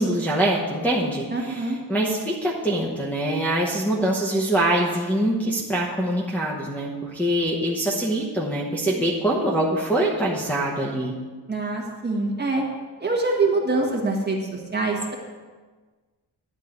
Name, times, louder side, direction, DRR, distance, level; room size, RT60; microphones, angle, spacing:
voice 1, 0.0-11.1, right 1 dB, 5° left, -6 dB, 1.0 m, -24 dB
voice 2, 1.3-1.8 11.5-12.6 13.0-15.1, right 3 dB, 25° right, -1 dB, 1.5 m, -24 dB
11.0 x 4.5 x 8.0 m, 1.4 s
wide cardioid pair, 175°, 42 cm